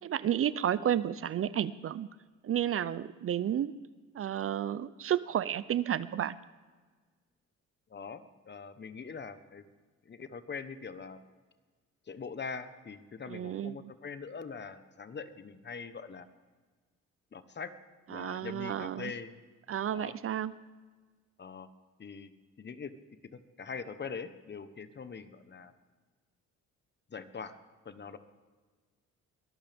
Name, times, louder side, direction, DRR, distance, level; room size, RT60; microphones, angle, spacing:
voice 1, 0.0-2.1 2.4-3.7 4.1-6.3 13.3-13.7 18.1-19.1 19.7-20.5, right 10 dB, 50° right, 17 dB, 0.5 m, -31 dB
voice 2, 7.9-9.6 10.0-11.2 12.1-16.3 17.3-17.7 18.1-19.4 19.8-20.1 21.4-21.7 22.0-22.3 22.6-22.9 23.3-25.7 27.1-27.6 27.8-28.2, left 5 dB, 35° left, 11 dB, 1.1 m, -43 dB
22.5 x 13.5 x 3.6 m, 1.4 s
cardioid pair, 90°, 30 cm